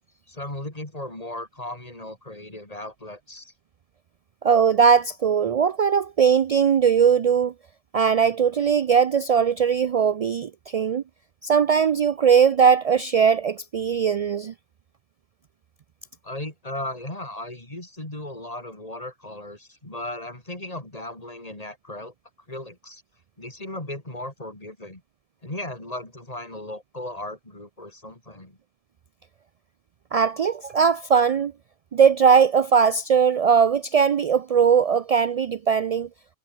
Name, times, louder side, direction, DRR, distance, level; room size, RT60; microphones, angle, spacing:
voice 1, 0.3-3.5 16.2-22.1 22.5-23.0 23.4-25.0 25.4-28.6, left 1 dB, 30° left, 4.1 m, -36 dB
voice 2, 4.4-7.5 7.9-11.0 11.4-14.5 30.1-31.5 31.9-36.1, right 6 dB, 70° right, 0.3 m, -19 dB
omnidirectional pair, 1.2 m